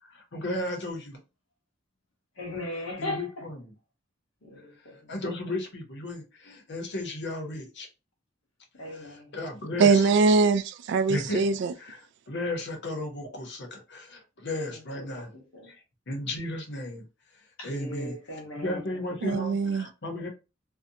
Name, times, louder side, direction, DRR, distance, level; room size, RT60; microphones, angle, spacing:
voice 1, 0.0-1.2 3.0-3.6 5.1-7.9 9.1-10.1 11.1-11.4 11.8-15.3 15.7-15.8 16.1-17.1 17.6-18.1 18.6-20.3, left 1 dB, 60° left, 0.8 m, -34 dB
voice 2, 2.3-3.5 4.4-5.1 8.7-9.4 14.7-15.7 17.6-19.5, left 1 dB, 90° left, 1.1 m, -39 dB
voice 3, 9.8-11.7 19.2-19.9, right 4 dB, 60° right, 0.3 m, -22 dB
2.6 x 2.1 x 2.6 m
head